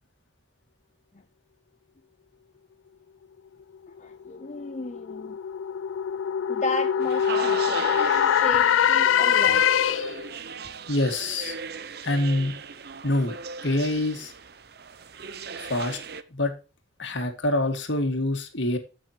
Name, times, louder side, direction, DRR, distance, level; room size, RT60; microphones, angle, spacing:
voice 1, 3.9-5.4 6.5-9.6, left 3 dB, 35° left, 0.6 m, -34 dB
sound 1, 4.1-10.3, left 8 dB, 85° left, 0.4 m, -23 dB
sound 2, 7.0-16.2, right 5 dB, 50° right, 0.7 m, -37 dB
voice 2, 10.9-11.6 12.0-12.6 13.0-13.4 13.6-14.3 15.6-16.0 16.3-16.5 17.0-18.8, left 1 dB, 70° left, 2.1 m, -25 dB
15.0 x 6.2 x 3.0 m
head